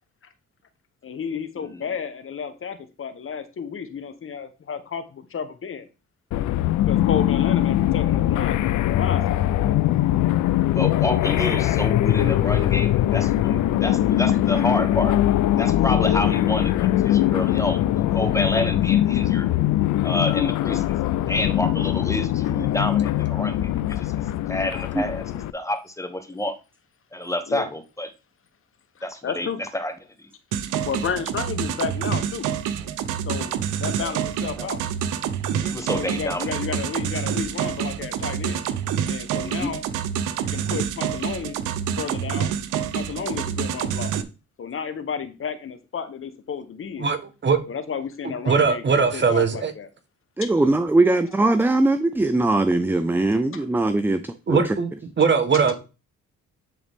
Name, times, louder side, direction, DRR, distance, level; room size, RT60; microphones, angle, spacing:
voice 1, 1.0-5.8 6.9-9.4 27.5-27.6 29.0-29.6 30.8-32.5 33.3-33.5 33.8-34.8 36.0-38.6 39.0-39.8 40.4-41.6 42.0-42.5 42.9-44.1 44.6-47.1 47.7-49.9 50.4-50.5 53.5-53.6, left 6 dB, 45° left, 1.1 m, -32 dB
sound 1, 6.3-25.5, left 13 dB, 75° left, 0.5 m, -21 dB
voice 2, 10.7-15.2 15.5-19.5 20.0-21.0 21.3-26.5 27.1-28.1 29.0-29.9 30.2-30.3 34.0-34.1 34.6-34.7 35.6-36.8 39.3-39.7 51.0-51.1, left 1 dB, 10° left, 1.1 m, -29 dB
sound 2, 30.5-44.2, right 9 dB, 85° right, 0.8 m, -27 dB
voice 3, 47.0-47.6 48.2-49.7 54.5-54.9 55.2-55.7, right 5 dB, 35° right, 1.3 m, -20 dB
voice 4, 50.4-54.2 54.5-54.6, right 2 dB, 5° right, 0.4 m, -20 dB
10.0 x 3.9 x 3.6 m
cardioid pair, 90°, 30 cm